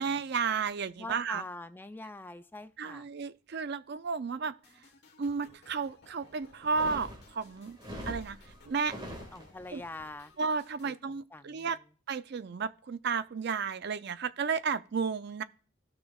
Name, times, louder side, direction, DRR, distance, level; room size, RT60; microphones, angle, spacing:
voice 1, 0.0-1.4 2.8-4.5 5.2-7.8 8.1-8.4 8.7-8.9 9.7-9.8 10.4-11.8 12.1-15.4, right 5 dB, 55° right, 0.4 m, -33 dB
voice 2, 1.0-3.1 9.3-10.3 10.8-11.9, left 2 dB, 10° left, 0.4 m, -45 dB
sound 1, 4.6-11.0, left 3 dB, 55° left, 1.3 m, -59 dB
sound 2, 6.6-9.8, equal, 25° right, 1.9 m, -43 dB
15.0 x 6.1 x 2.3 m
head